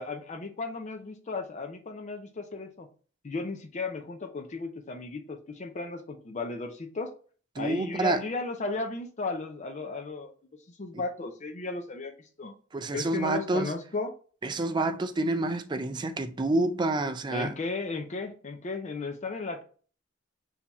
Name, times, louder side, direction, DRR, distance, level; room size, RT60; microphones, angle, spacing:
voice 1, 0.0-2.9 3.2-7.1 7.6-10.3 10.7-12.6 12.9-14.1 17.3-19.6, left 3 dB, 35° left, 0.5 m, -35 dB
voice 2, 7.6-8.2 12.7-13.7 14.4-17.5, right 2 dB, 20° right, 0.4 m, -28 dB
4.4 x 2.8 x 4.1 m
head